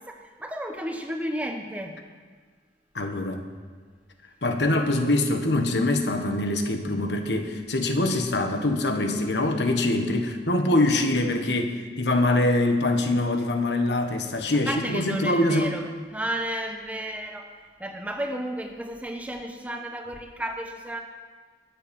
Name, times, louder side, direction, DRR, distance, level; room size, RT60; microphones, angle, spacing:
voice 1, 0.0-2.0 14.7-17.5 17.8-21.0, right 1 dB, 10° right, 4 dB, 1.0 m, -33 dB
voice 2, 2.9-3.4 4.4-15.7, left 2 dB, 80° left, 5 dB, 1.4 m, -24 dB
20.5 x 8.0 x 5.4 m, 1.5 s
head